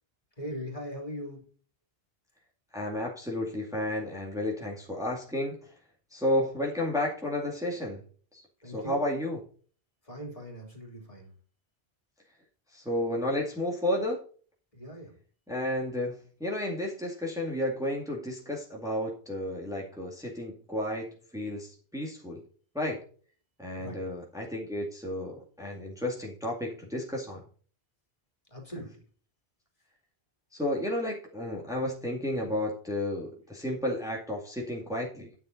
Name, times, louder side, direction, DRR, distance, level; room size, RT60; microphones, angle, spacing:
voice 1, 0.4-1.4 8.6-9.0 10.0-11.3 14.7-15.2 23.8-24.0 28.5-29.0, equal, 35° left, 0 dB, 3.2 m, -40 dB
voice 2, 2.7-5.6 6.1-8.0 8.3-8.4 8.7-9.4 12.7-14.2 15.5-22.4 22.7-23.0 23.6-27.4 30.5-35.3, left 1 dB, 5° right, -2 dB, 2.1 m, -32 dB
9.9 x 7.3 x 3.9 m, 0.42 s
omnidirectional pair, 1.0 m